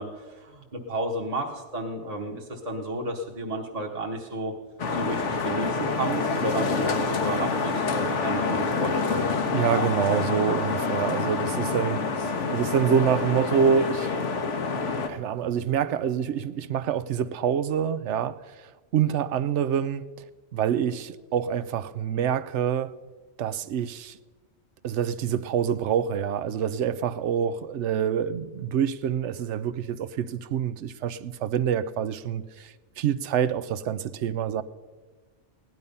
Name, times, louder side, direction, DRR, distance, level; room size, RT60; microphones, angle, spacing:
voice 1, 0.0-4.5 4.9-9.3, right 1 dB, 35° right, 1.4 m, -32 dB
sound 1, 4.8-15.1, left 4 dB, 85° left, 1.5 m, -27 dB
voice 2, 9.5-14.1 14.9-20.0 20.5-22.9 23.4-24.2 24.8-34.6, right 8 dB, 75° right, 1.0 m, -26 dB
17.0 x 11.0 x 5.4 m
omnidirectional pair, 1.2 m